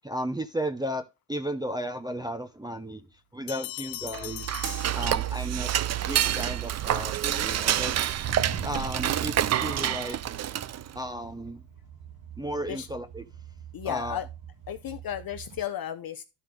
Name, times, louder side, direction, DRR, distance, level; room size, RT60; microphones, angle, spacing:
voice 1, 0.0-1.0 1.3-4.5 5.0-5.7 6.1-8.0 8.6-10.2 10.9-11.6 12.4-13.2 13.8-14.2, equal, 10° right, 0.8 m, -34 dB
sound 1, 3.5-5.7, left 19 dB, 85° left, 0.6 m, -40 dB
sound 2, 3.7-3.8 4.4-5.1 5.5-6.6 6.9-15.6, right 7 dB, 70° right, 1.9 m, -42 dB
Dishes pots and pans / Cutlery silverware, 4.1-10.9, right 11 dB, 35° right, 0.4 m, -28 dB
voice 2, 13.7-14.3 14.7-16.2, left 10 dB, 50° left, 0.7 m, -34 dB
12.0 x 4.4 x 3.7 m
cardioid pair, 80°, 47 cm